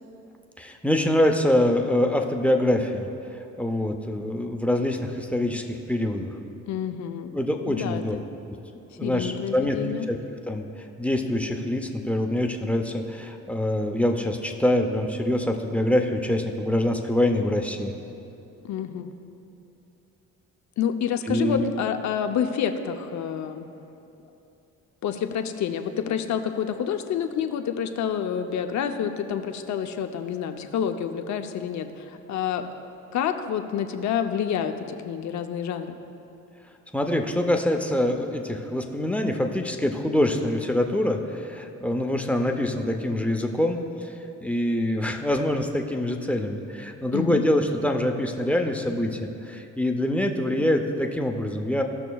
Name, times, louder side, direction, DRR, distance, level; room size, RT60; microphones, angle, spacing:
voice 1, 0.6-3.1 3.6-6.3 7.3-8.2 9.0-9.8 10.1-10.2 10.5-10.7 11.0-18.0 21.3-21.7 36.9-44.1 44.4-51.8, left 1 dB, 5° left, 3 dB, 0.6 m, -25 dB
voice 2, 6.7-7.4 7.7-8.2 9.0-10.1 18.6-19.1 20.8-23.7 25.0-32.6 33.1-36.0 47.1-47.4, left 8 dB, 70° left, 7 dB, 0.7 m, -28 dB
16.0 x 6.0 x 2.3 m, 2.9 s
cardioid pair, 90°, 30 cm